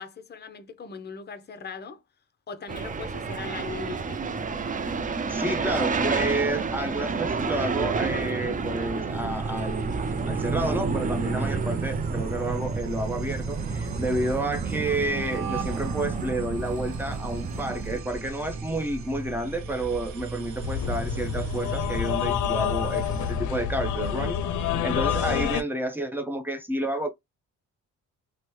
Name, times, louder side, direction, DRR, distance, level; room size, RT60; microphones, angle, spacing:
voice 1, 0.0-2.0 2.5-4.2, left 6 dB, 35° left, 0.7 m, -40 dB
sound 1, 2.7-18.0, right 4 dB, 25° right, 0.5 m, -30 dB
voice 2, 5.3-10.0 10.3-27.1, right 1 dB, 5° right, 0.8 m, -30 dB
sound 2, 9.1-23.4, right 3 dB, 65° right, 1.0 m, -36 dB
sound 3, 20.6-25.6, left 8 dB, 75° left, 0.6 m, -27 dB
3.0 x 2.1 x 3.1 m
cardioid pair, 90°, 30 cm